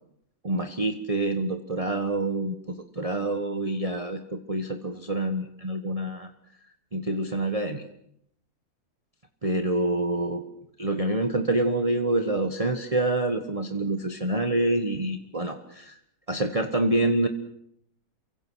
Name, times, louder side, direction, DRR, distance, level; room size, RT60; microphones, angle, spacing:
voice 1, 0.4-6.3 6.9-7.8 9.4-10.4 10.8-16.0 16.3-17.3, right 2 dB, 25° right, 6 dB, 1.4 m, -27 dB
29.0 x 24.0 x 6.4 m, 0.73 s
omnidirectional pair, 1.6 m